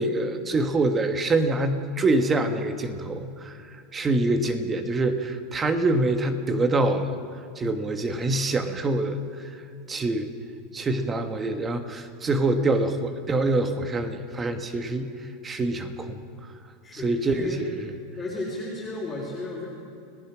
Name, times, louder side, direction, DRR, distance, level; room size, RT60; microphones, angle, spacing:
voice 1, 0.0-3.5 3.9-7.1 7.6-9.2 9.9-10.3 10.7-15.1 15.4-16.2 17.0-17.5, right 2 dB, 15° right, 7 dB, 1.4 m, -25 dB
voice 2, 16.8-17.6 18.2-19.7, left 2 dB, 10° left, -6 dB, 4.3 m, -33 dB
29.5 x 18.5 x 6.2 m, 2.4 s
supercardioid pair, 160°, 0 cm